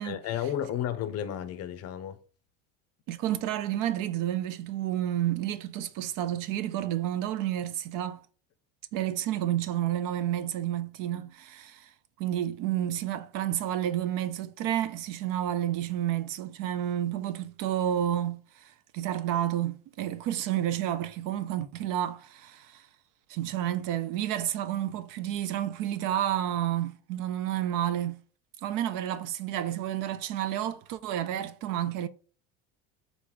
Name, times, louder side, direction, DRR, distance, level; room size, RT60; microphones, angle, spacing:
voice 1, 0.0-2.2, left 10 dB, 45° left, 0.5 m, -32 dB
voice 2, 3.1-8.2 8.9-11.9 12.2-22.9 23.3-28.2 28.6-32.1, right 11 dB, 60° right, 0.5 m, -30 dB
3.9 x 3.1 x 3.7 m
supercardioid pair, 110°, 37 cm